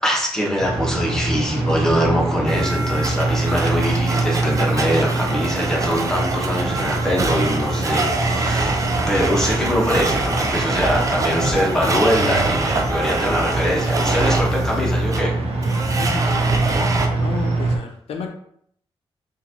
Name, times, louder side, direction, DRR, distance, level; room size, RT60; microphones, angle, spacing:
voice 1, 0.0-15.3, equal, 5° left, -3 dB, 1.1 m, -23 dB
sound 1, 0.6-17.8, right 2 dB, 80° right, 0.9 m, -24 dB
Domestic sounds home sounds, 2.5-17.1, right 2 dB, 30° right, 0.5 m, -25 dB
voice 2, 16.0-16.8 17.2-18.3, left 5 dB, 75° left, 4 dB, 0.5 m, -32 dB
4.0 x 2.5 x 2.9 m, 0.67 s
wide cardioid pair, 110°, 10 cm